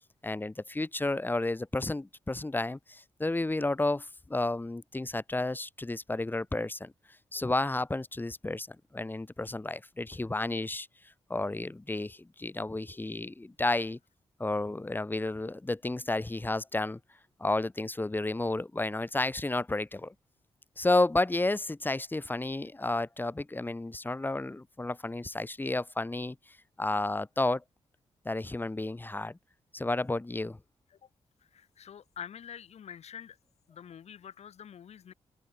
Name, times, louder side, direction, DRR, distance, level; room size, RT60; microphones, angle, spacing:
voice 1, 0.2-6.9 7.3-10.9 11.3-14.0 14.4-17.0 17.4-20.1 20.8-26.3 26.8-27.6 28.2-29.4 29.7-30.6, left 2 dB, 15° left, 5.1 m, -31 dB
voice 2, 31.5-33.4 33.7-35.1, left 8 dB, 75° left, 4.6 m, -46 dB
cardioid pair, 100°, 11 cm